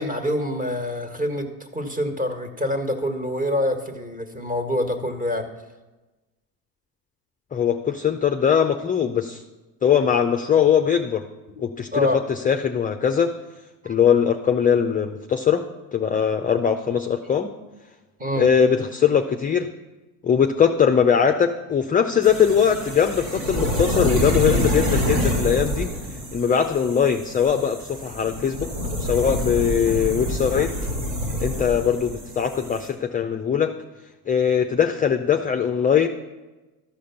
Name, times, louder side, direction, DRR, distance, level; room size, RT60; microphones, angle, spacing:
voice 1, 0.0-5.5 11.5-11.6 11.9-12.2 13.8-13.9 18.2-18.5, left 1 dB, 15° right, 6 dB, 1.6 m, -26 dB
voice 2, 7.5-9.4 9.8-11.2 11.6-13.3 13.8-15.6 15.9-17.5 18.4-19.7 20.2-25.9 26.3-28.7 29.0-30.7 31.4-33.7 34.3-36.1, left 7 dB, 20° left, 6 dB, 0.5 m, -21 dB
sound 1, 22.2-32.9, equal, 80° right, 4.2 m, -27 dB
13.0 x 5.0 x 7.0 m, 1.2 s
hypercardioid pair, 80°, 48 cm